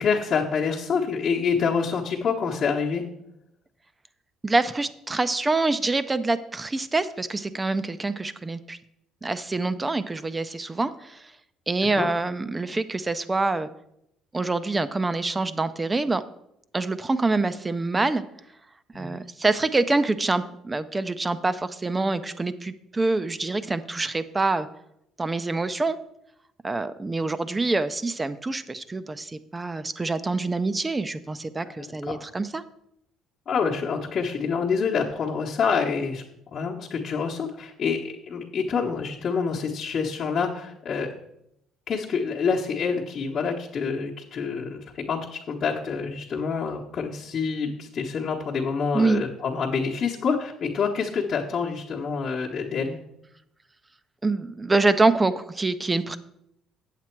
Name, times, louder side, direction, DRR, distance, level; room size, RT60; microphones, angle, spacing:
voice 1, 0.0-3.0 12.0-12.1 18.9-19.2 31.6-32.2 33.5-36.2 36.5-41.1 41.9-44.8 45.1-53.0, left 5 dB, 45° left, -4 dB, 1.0 m, -27 dB
voice 2, 4.4-8.8 9.2-11.3 11.7-13.7 14.3-16.2 16.7-18.2 18.9-24.7 25.2-26.0 26.6-32.6 48.9-49.2 54.2-56.2, right 3 dB, 15° right, 13 dB, 0.5 m, -25 dB
8.2 x 7.5 x 4.5 m, 0.80 s
cardioid pair, 115°, 0 cm